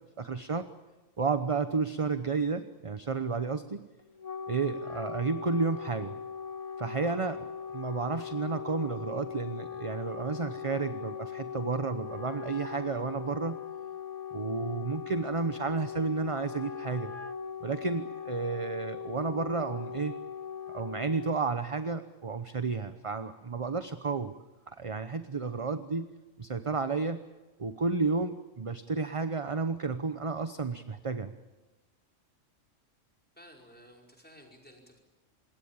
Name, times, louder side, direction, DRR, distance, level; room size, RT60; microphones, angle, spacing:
voice 1, 0.2-0.7 1.2-3.9 4.5-6.2 6.8-7.4 7.7-13.6 14.3-17.1 17.6-20.1 20.7-24.3 24.7-26.1 26.4-27.2 27.6-31.3, right 4 dB, 30° right, 10 dB, 0.9 m, -32 dB
Wind instrument woodwind instrument, 4.0-21.5, left 7 dB, 30° left, 1.4 m, -40 dB
voice 2, 33.4-35.0, equal, 5° left, 1 dB, 5.1 m, -54 dB
26.5 x 21.0 x 8.8 m, 1.1 s
omnidirectional pair, 1.3 m